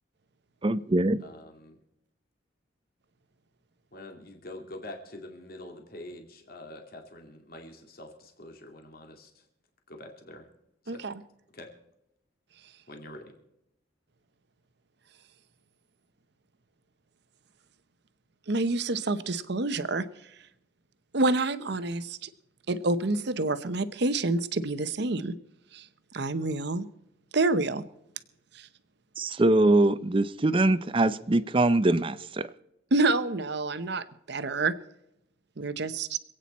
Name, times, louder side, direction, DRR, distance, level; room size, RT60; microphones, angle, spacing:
voice 1, 0.6-1.2 29.2-32.5, right 2 dB, 25° right, 14 dB, 0.5 m, -23 dB
voice 2, 1.2-1.8 3.9-9.4 9.9-10.5 10.8-11.0 11.5-11.7 12.9-13.3, left 1 dB, 50° left, 4 dB, 2.2 m, -45 dB
voice 3, 18.5-20.1 21.1-22.3 22.7-25.3 25.7-25.8 26.1-26.9 27.3-27.8 28.6-28.7 32.9-34.7 35.6-36.2, right 2 dB, 60° right, 13 dB, 0.8 m, -28 dB
26.5 x 9.0 x 4.2 m, 0.84 s
head